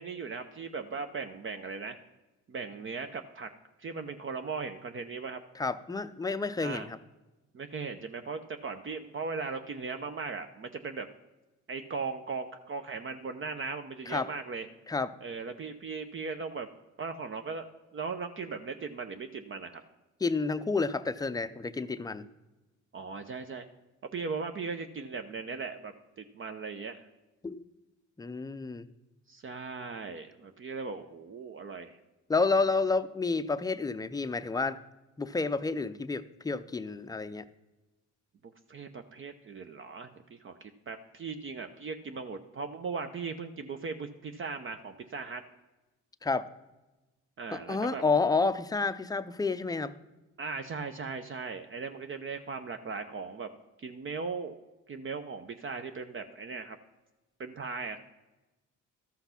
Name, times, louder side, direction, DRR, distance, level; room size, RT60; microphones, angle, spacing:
voice 1, 0.0-2.0 2.5-3.5 3.8-5.4 6.6-6.9 7.5-11.1 11.7-14.7 15.2-16.7 17.0-17.7 17.9-19.8 22.9-23.6 24.1-27.0 29.3-32.0 38.7-45.4 47.4-48.0 50.4-53.5 53.8-54.6 54.9-56.8 57.4-58.0, right 4 dB, 40° right, 7 dB, 0.7 m, -38 dB
voice 2, 5.6-7.0 14.1-14.3 14.9-15.2 20.2-22.2 27.4-27.6 28.2-28.9 32.3-34.8 35.2-37.4 46.2-46.5 47.5-49.9, left 4 dB, 15° left, 11 dB, 0.5 m, -30 dB
13.0 x 5.8 x 5.7 m, 1.1 s
cardioid pair, 90°, 30 cm